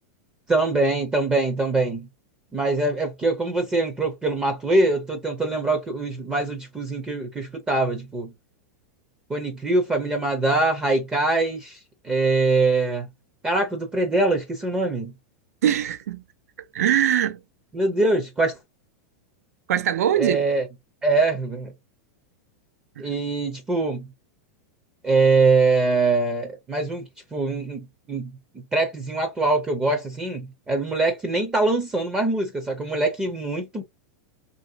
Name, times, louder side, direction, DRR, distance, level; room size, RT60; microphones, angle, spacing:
voice 1, 0.5-2.1 2.5-8.3 9.3-11.8 12.0-13.1 13.4-15.1 17.7-18.6 20.2-20.6 21.0-21.7 23.0-24.1 25.0-27.0 27.3-28.3 28.7-33.8, right 3 dB, 10° right, 0.5 m, -23 dB
voice 2, 15.6-16.2 16.7-17.4 19.7-20.4 23.0-23.1, right 10 dB, 90° right, 0.6 m, -22 dB
3.1 x 2.6 x 2.6 m
supercardioid pair, 160°, 8 cm